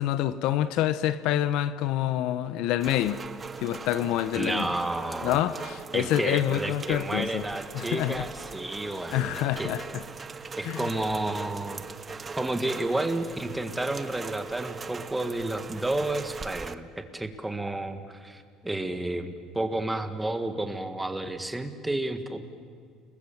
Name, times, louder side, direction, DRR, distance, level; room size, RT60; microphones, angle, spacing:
voice 1, 0.0-3.2 3.6-4.7 5.2-7.4 7.7-8.3 9.1-10.0 10.6-10.9, left 12 dB, 75° left, 0.9 m, -27 dB
Rain, 2.8-16.8, right 5 dB, 25° right, 0.9 m, -40 dB
voice 2, 4.3-5.4 5.9-9.7 10.5-11.8 12.3-22.4, right 2 dB, 10° right, 1.7 m, -31 dB
30.0 x 21.0 x 7.3 m
cardioid pair, 120°, 0 cm